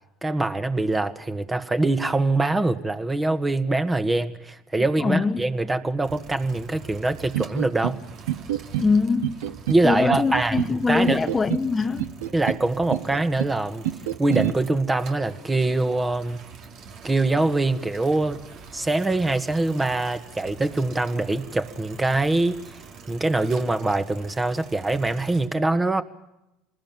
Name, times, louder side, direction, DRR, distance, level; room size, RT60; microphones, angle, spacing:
voice 1, 0.2-8.0 9.7-11.2 12.3-13.9 14.2-16.4 17.0-18.4 18.7-22.6 23.1-26.0, right 2 dB, 15° right, 1.8 m, -23 dB
voice 2, 5.0-5.4 8.8-9.4 9.8-12.1, left 4 dB, 25° left, 0.9 m, -23 dB
sound 1, 6.0-25.5, right 5 dB, 55° right, 2.4 m, -44 dB
sound 2, 7.3-8.0 8.3-8.9 9.2-9.8 10.1-10.7 11.1-11.7 12.0-12.6 12.9-13.5 13.8-14.5, right 14 dB, 80° right, 0.8 m, -27 dB
26.5 x 20.0 x 7.6 m
hypercardioid pair, 80°, 0 cm